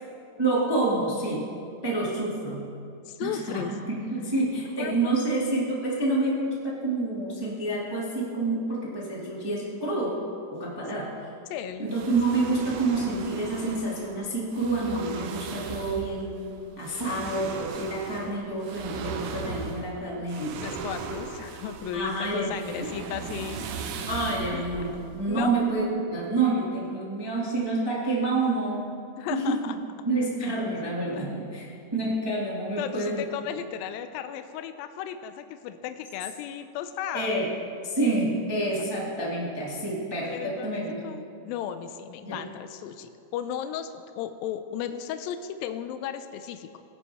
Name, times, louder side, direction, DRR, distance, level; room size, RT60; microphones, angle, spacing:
voice 1, 0.4-1.5 1.8-2.7 3.2-10.2 10.5-11.1 11.8-20.6 21.9-22.8 24.1-28.9 29.3-29.7 30.0-31.7 31.9-33.2 37.1-37.5 37.8-41.0 42.2-42.4, right 2 dB, 40° right, -5 dB, 0.3 m, -28 dB
voice 2, 3.1-3.7 4.8-5.1 5.5-5.6 11.5-12.2 20.6-23.7 24.5-24.6 25.3-25.5 29.2-29.8 32.8-37.3 40.3-46.7, left 9 dB, 80° left, 9 dB, 2.2 m, -35 dB
sound 1, 11.9-25.8, right 5 dB, 80° right, 2.7 m, -38 dB
18.5 x 9.9 x 3.4 m, 2.6 s
omnidirectional pair, 4.4 m